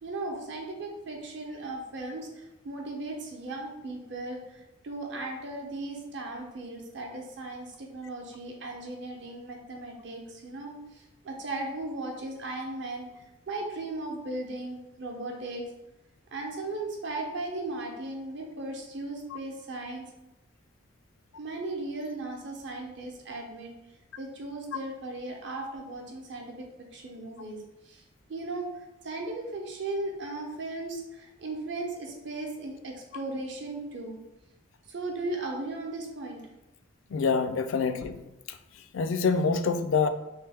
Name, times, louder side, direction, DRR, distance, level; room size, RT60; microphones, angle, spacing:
voice 1, 0.0-13.1 13.5-15.7 16.3-20.1 21.4-23.7 24.2-27.6 27.8-28.0 28.3-28.7 29.0-34.2 34.9-36.4, right 2 dB, 55° right, 1 dB, 0.7 m, -37 dB
voice 2, 37.1-38.2 38.9-40.1, left 5 dB, 65° left, 10 dB, 0.3 m, -26 dB
3.2 x 3.1 x 3.4 m, 0.93 s
head